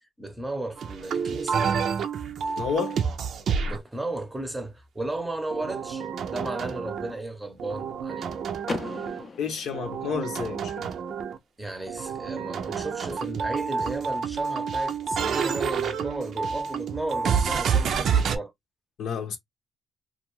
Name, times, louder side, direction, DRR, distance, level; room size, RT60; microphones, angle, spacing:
voice 1, 0.2-1.6 3.6-8.4 11.6-18.5, right 2 dB, 10° right, 0.7 m, -34 dB
sound 1, 0.8-3.8 5.5-7.2 7.6-9.3 9.7-11.4 11.9-18.4, right 6 dB, 65° right, 0.5 m, -29 dB
voice 2, 2.6-3.0 9.4-10.9 19.0-19.4, left 6 dB, 75° left, 0.8 m, -30 dB
Car / Door, 8.6-10.6, left 4 dB, 35° left, 0.5 m, -37 dB
2.5 x 2.3 x 3.0 m
cardioid pair, 90°, 0 cm